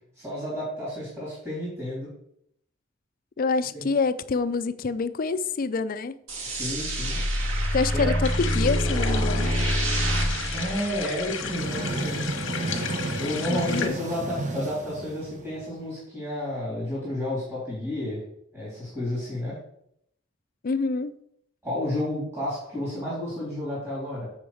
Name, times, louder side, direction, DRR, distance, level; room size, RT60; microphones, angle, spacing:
voice 1, 0.2-2.1 3.7-3.9 6.4-7.2 7.9-8.1 10.5-12.2 13.2-18.2 18.5-19.6 21.6-24.3, left 1 dB, 15° right, 3.5 m, -31 dB
voice 2, 3.4-6.2 7.7-9.5 13.5-13.9 20.6-21.1, left 4 dB, 45° left, 0.4 m, -26 dB
sound 1, 6.3-11.6, equal, 85° right, 2.0 m, -26 dB
sound 2, 8.2-13.9, left 7 dB, 70° left, 1.2 m, -34 dB
sound 3, 11.2-15.8, right 2 dB, 40° right, 1.0 m, -32 dB
7.2 x 7.0 x 4.9 m
head